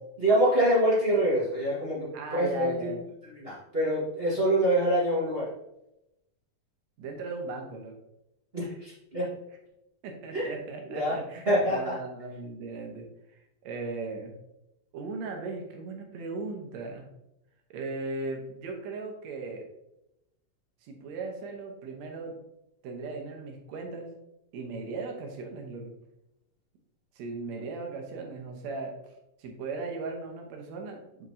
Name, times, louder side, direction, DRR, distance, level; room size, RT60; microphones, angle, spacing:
voice 1, 0.2-2.9 3.3-5.5 8.5-9.3 10.3-10.5 10.9-11.2 11.4-11.9, right 1 dB, 30° right, -8 dB, 1.0 m, -25 dB
voice 2, 2.1-3.0 7.0-8.0 10.0-14.3 14.9-17.1 17.7-19.6 20.8-22.4 22.8-24.1 24.5-25.9 27.2-29.1 29.4-31.3, right 3 dB, 70° right, 2 dB, 2.2 m, -37 dB
7.4 x 5.3 x 2.7 m, 0.87 s
omnidirectional pair, 3.5 m